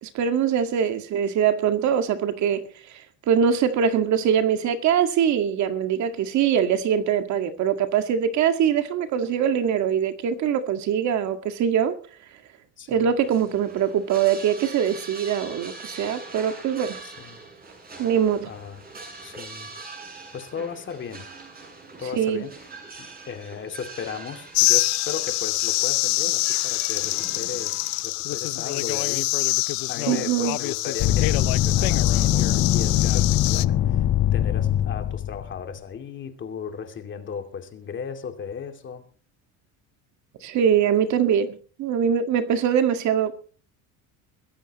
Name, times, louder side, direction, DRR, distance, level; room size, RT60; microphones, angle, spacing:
voice 1, 0.0-2.6 3.3-12.0 12.9-17.0 18.0-18.5 22.2-22.5 30.1-30.6 40.4-43.3, right 8 dB, 50° right, 2.0 m, -23 dB
voice 2, 12.8-13.1 17.0-17.4 18.4-18.8 19.2-19.7 20.3-21.2 22.0-22.5 23.0-29.3 29.9-34.1 34.3-39.1, left 7 dB, 30° left, 2.6 m, -36 dB
sound 1, 13.2-28.0, right 3 dB, 25° right, 7.7 m, -42 dB
sound 2, 24.5-33.7, left 22 dB, 65° left, 0.7 m, -25 dB
sound 3, 31.0-35.5, left 12 dB, 50° left, 1.4 m, -22 dB
23.0 x 15.5 x 3.1 m
cardioid pair, 160°, 37 cm